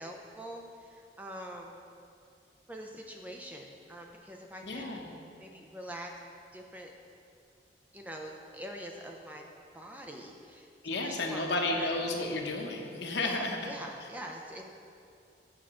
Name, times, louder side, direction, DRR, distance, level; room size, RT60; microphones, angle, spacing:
voice 1, 0.0-1.8 2.7-5.0 5.4-6.1 6.5-6.9 7.9-9.5 9.7-10.7 11.0-11.9 13.2-14.7, equal, 10° right, 1 dB, 0.5 m, -44 dB
voice 2, 4.6-5.1 10.8-13.7, left 2 dB, 75° left, 2 dB, 0.8 m, -32 dB
8.5 x 5.7 x 3.7 m, 2.5 s
head